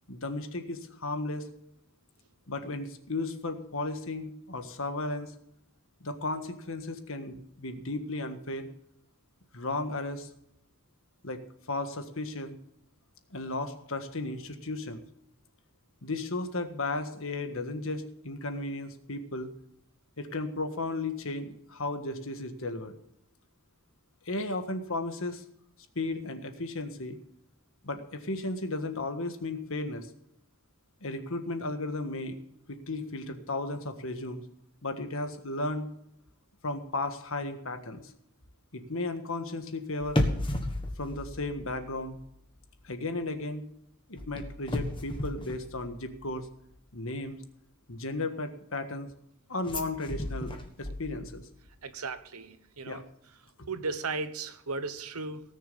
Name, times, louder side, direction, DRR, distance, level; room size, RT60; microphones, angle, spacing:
voice 1, 0.1-1.5 2.5-5.3 6.0-8.7 9.5-10.3 11.2-11.4 11.7-12.6 13.3-15.0 16.0-19.5 20.2-22.9 24.2-25.4 25.9-27.2 27.8-30.1 31.0-32.4 32.7-34.4 34.8-35.9 36.6-38.1 38.7-40.2 41.0-42.2 42.8-43.7 44.1-46.5 46.9-47.4 47.9-49.1 49.5-51.4 52.8-53.0, left 2 dB, 65° left, 7 dB, 1.6 m, -34 dB
sound 1, 40.0-42.3 42.6-42.9 44.2-46.4 49.6-51.5 51.8-51.9, left 1 dB, 20° left, 1.4 m, -34 dB
voice 2, 51.8-53.0 53.7-55.4, right 4 dB, 85° right, 12 dB, 1.1 m, -36 dB
18.0 x 6.7 x 6.9 m, 0.75 s
head